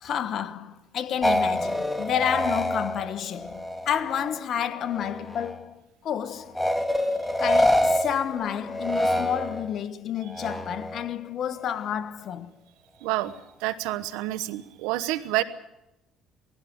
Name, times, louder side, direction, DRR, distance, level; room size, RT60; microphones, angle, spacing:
voice 1, 0.0-6.6 7.4-12.5, left 9 dB, 55° left, 1.3 m, -30 dB
sound 1, 1.2-4.4 4.7-5.6 6.5-9.8 10.3-11.0, left 1 dB, 5° left, 2.1 m, -26 dB
voice 2, 13.0-13.3 13.6-15.4, right 16 dB, 90° right, 1.1 m, -28 dB
19.5 x 16.0 x 8.7 m
supercardioid pair, 90°, 0 cm